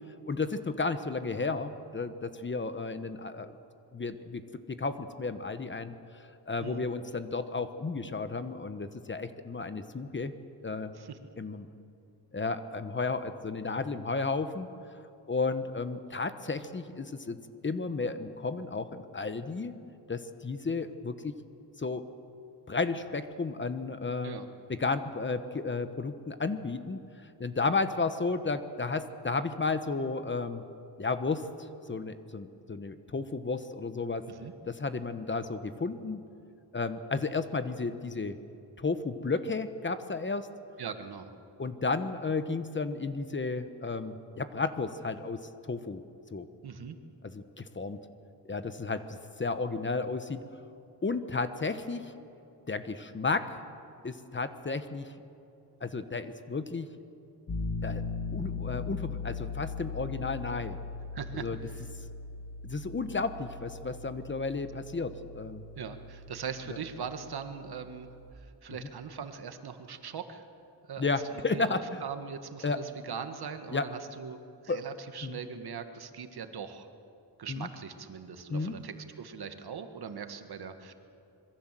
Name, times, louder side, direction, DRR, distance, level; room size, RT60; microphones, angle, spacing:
voice 1, 0.3-3.6 3.9-4.4 4.7-10.3 10.6-10.9 11.4-11.7 12.3-14.7 15.3-17.4 17.6-19.8 20.1-21.3 21.8-22.0 22.7-24.4 24.7-27.0 27.4-30.6 31.0-34.2 34.7-36.2 36.7-38.4 38.8-40.5 41.6-45.4 45.7-46.0 46.3-46.5 47.3-48.0 48.4-50.4 51.0-52.1 52.7-53.6 54.0-55.1 55.8-56.9 57.8-58.0 58.3-60.8 61.3-61.6 62.6-65.6 71.0-71.8 72.6-72.8 73.7-73.8 74.7-74.9 75.2-75.4 77.5-77.7 78.5-78.8, left 4 dB, 25° left, 10 dB, 1.1 m, -33 dB
voice 2, 40.8-41.3 46.6-47.0 61.1-61.8 65.8-70.4 70.9-71.1 71.5-76.9 77.4-80.9, right 6 dB, 65° right, 8 dB, 1.8 m, -41 dB
Piano, 57.5-68.3, left 4 dB, 50° left, 2.3 m, -39 dB
26.0 x 22.5 x 7.6 m, 2.7 s
wide cardioid pair, 145°, 42 cm